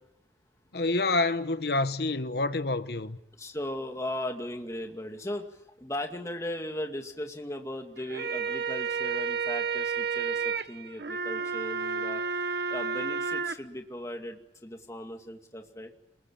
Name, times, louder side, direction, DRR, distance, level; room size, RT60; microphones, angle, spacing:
voice 1, 0.7-3.2, left 2 dB, 60° left, 1.2 m, -27 dB
voice 2, 3.4-12.2 12.7-15.9, left 1 dB, 15° left, 2.3 m, -37 dB
sound 1, 8.0-13.5, right 6 dB, 65° right, 1.2 m, -31 dB
27.5 x 21.0 x 8.8 m
head